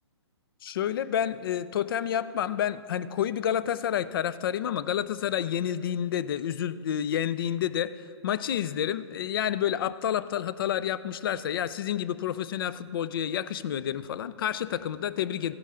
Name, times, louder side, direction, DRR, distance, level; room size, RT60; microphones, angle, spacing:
voice 1, 0.6-15.5, left 10 dB, 50° left, 16 dB, 0.4 m, -29 dB
15.0 x 9.8 x 3.7 m, 2.3 s
hypercardioid pair, 150°, 15 cm